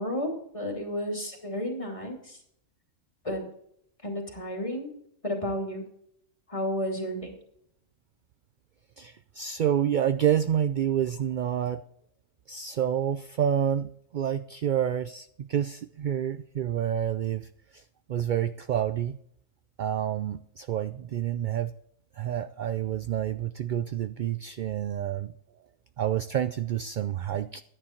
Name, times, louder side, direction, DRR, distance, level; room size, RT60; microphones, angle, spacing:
voice 1, 0.0-2.4 3.2-3.5 4.0-4.9 5.2-5.8 6.5-7.3, equal, 25° left, 1 dB, 2.7 m, -32 dB
voice 2, 9.0-11.8 12.5-17.8 18.1-19.2 19.8-21.7 22.2-25.3 26.0-27.6, right 10 dB, 65° right, 12 dB, 0.4 m, -28 dB
11.5 x 10.0 x 4.4 m, 0.70 s
omnidirectional pair, 1.3 m